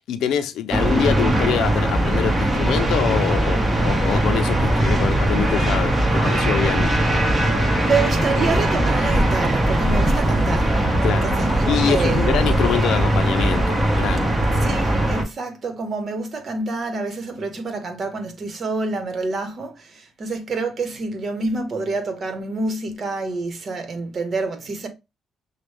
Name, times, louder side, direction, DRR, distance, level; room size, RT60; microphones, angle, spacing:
voice 1, 0.1-6.9 11.0-11.3 11.7-14.3, left 9 dB, 80° left, 0.6 m, -25 dB
sound 1, 0.7-15.2, right 1 dB, 20° right, 1.4 m, -20 dB
voice 2, 7.8-10.7 11.0-12.3 14.6-24.9, right 3 dB, 45° right, 1.2 m, -27 dB
5.9 x 2.3 x 3.4 m
cardioid pair, 90°, 0 cm